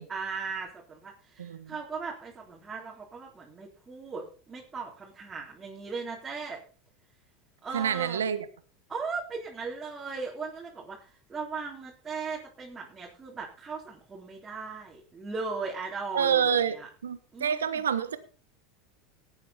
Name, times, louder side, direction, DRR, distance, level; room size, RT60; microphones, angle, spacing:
voice 1, 0.1-6.6 7.6-8.2 8.9-16.9 17.3-17.8, right 4 dB, 20° right, -3 dB, 3.8 m, -38 dB
voice 2, 1.4-1.7 7.7-8.5 16.1-16.7 17.0-18.2, right 8 dB, 85° right, 12 dB, 1.2 m, -27 dB
18.5 x 8.6 x 4.3 m, 0.39 s
hypercardioid pair, 85°, 0 cm